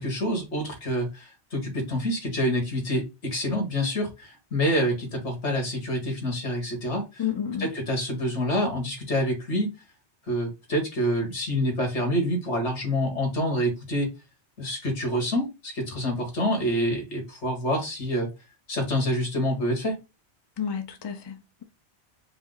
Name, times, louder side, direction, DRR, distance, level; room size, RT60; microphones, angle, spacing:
voice 1, 0.0-7.3 7.6-9.7 10.3-14.1 14.6-18.3 18.7-20.0, equal, 75° left, 1.9 m, -27 dB
voice 2, 7.2-7.7 20.6-21.6, left 8 dB, 35° left, 0.4 m, -31 dB
4.9 x 2.0 x 3.8 m
omnidirectional pair, 1.2 m